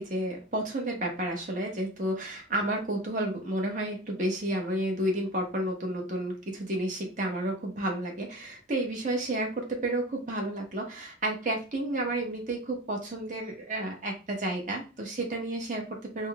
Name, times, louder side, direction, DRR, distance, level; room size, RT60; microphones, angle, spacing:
voice 1, 0.0-16.3, right 1 dB, 40° right, 1 dB, 1.1 m, -31 dB
4.1 x 2.2 x 3.5 m, 0.32 s
head